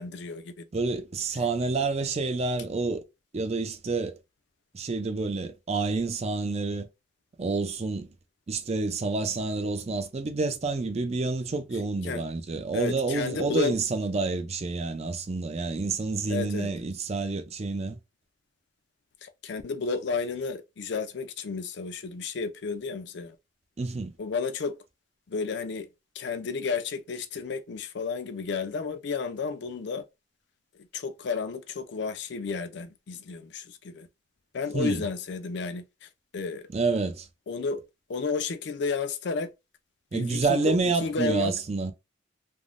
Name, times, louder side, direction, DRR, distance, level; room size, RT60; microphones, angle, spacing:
voice 1, 0.0-0.7 12.0-12.2 12.7-13.7 16.3-16.7 19.2-23.4 24.2-24.8 25.3-25.9 26.1-30.0 30.8-34.1 34.5-36.7 37.5-37.8 38.1-39.5 40.1-41.5, left 4 dB, 60° left, 0.4 m, -32 dB
voice 2, 0.7-3.0 3.3-4.2 4.7-6.9 7.4-8.1 8.5-18.0 23.8-24.1 34.7-35.0 36.7-37.3 40.1-41.9, right 3 dB, 35° right, 0.4 m, -28 dB
3.3 x 2.1 x 2.5 m
head